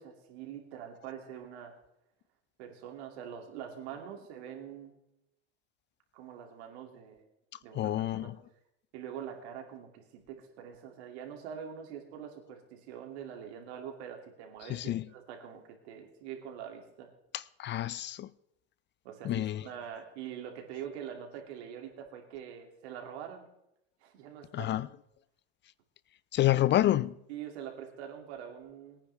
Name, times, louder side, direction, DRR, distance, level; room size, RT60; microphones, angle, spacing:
voice 1, 0.0-1.7 2.6-4.9 6.1-7.2 7.6-8.3 8.9-17.1 19.0-23.4 24.0-24.7 27.3-29.0, right 8 dB, 80° right, 2.8 m, -44 dB
voice 2, 7.7-8.4 14.7-15.1 17.3-18.3 19.2-19.7 24.5-24.9 26.3-27.1, left 13 dB, 35° left, 0.4 m, -28 dB
21.5 x 9.9 x 3.5 m
supercardioid pair, 100°, 32 cm